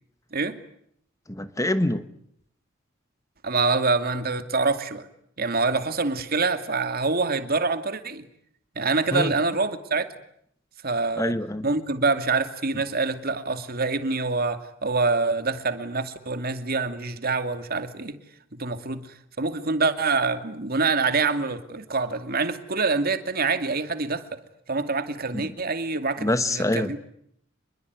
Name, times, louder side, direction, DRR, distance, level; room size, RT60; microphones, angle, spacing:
voice 1, 1.3-2.0 9.1-9.3 11.2-11.7 25.3-25.5 26.2-26.9, left 1 dB, 15° left, 1.3 m, -25 dB
voice 2, 3.4-5.1 5.4-8.2 8.8-10.1 10.8-11.3 11.6-18.2 18.6-19.1 19.4-24.4 24.7-27.0, right 4 dB, 50° right, 2.5 m, -25 dB
27.5 x 22.5 x 9.5 m
head